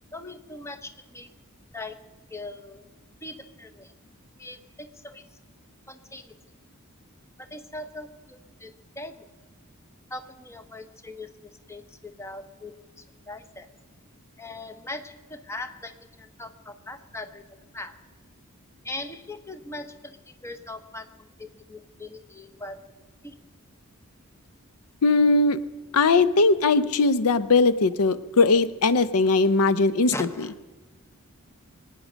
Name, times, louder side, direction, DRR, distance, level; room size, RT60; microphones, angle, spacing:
voice 1, 0.1-1.3 1.7-2.8 3.2-3.9 4.4-5.2 5.9-6.3 7.4-9.3 10.1-13.7 14.4-17.9 18.8-22.8 23.2-23.4 30.1-30.5, left 2 dB, 15° left, 8 dB, 0.8 m, -40 dB
voice 2, 25.0-25.6 25.9-30.3, left 3 dB, 90° left, 15 dB, 0.6 m, -20 dB
23.0 x 9.5 x 6.2 m, 1.3 s
head